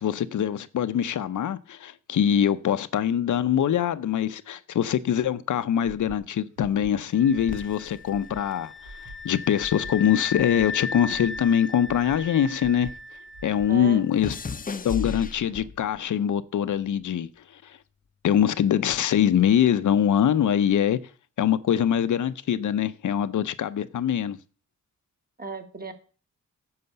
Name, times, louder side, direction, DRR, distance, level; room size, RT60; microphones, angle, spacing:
voice 1, 0.0-8.7 9.2-12.9 13.4-14.3 14.8-17.8 18.2-21.0 21.4-24.4, left 9 dB, 80° left, 0.6 m, -23 dB
Breathing, 5.8-6.2 6.6-6.9 7.3-7.7 8.1-8.4 8.8-9.2 9.6-9.9 10.3-10.7 11.1-11.4 11.8-12.2 12.6-12.9 13.3-13.7, right 2 dB, 85° right, 1.7 m, -45 dB
sound 1, 7.1-13.9, left 4 dB, ahead, 1.1 m, -37 dB
sound 2, 7.5-10.0 10.3-12.9 13.2-16.0 16.7-17.1, left 5 dB, 30° left, 0.6 m, -37 dB
voice 2, 13.7-14.1 25.4-25.9, right 3 dB, 30° right, 1.5 m, -35 dB
9.6 x 5.6 x 6.8 m
wide cardioid pair, 100°, 30 cm